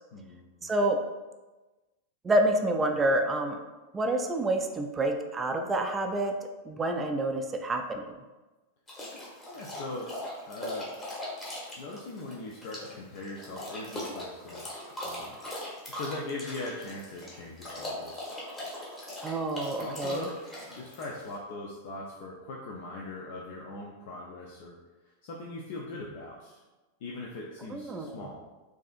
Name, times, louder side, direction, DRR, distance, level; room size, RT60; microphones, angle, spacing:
voice 1, 0.1-0.7 9.5-10.1 10.5-10.9 11.8-15.4 15.6-18.3 19.8-24.8 25.2-26.6 27.0-28.5, left 2 dB, 50° left, -2 dB, 0.5 m, -40 dB
voice 2, 0.6-1.0 2.2-3.6 3.9-6.3 6.7-8.0 19.2-20.3 27.7-28.2, right 1 dB, 20° right, 5 dB, 0.3 m, -28 dB
sound 1, 8.9-21.4, left 1 dB, 20° left, 1.2 m, -40 dB
4.7 x 2.7 x 2.4 m, 1.2 s
figure-of-eight pair, 90°, 0 cm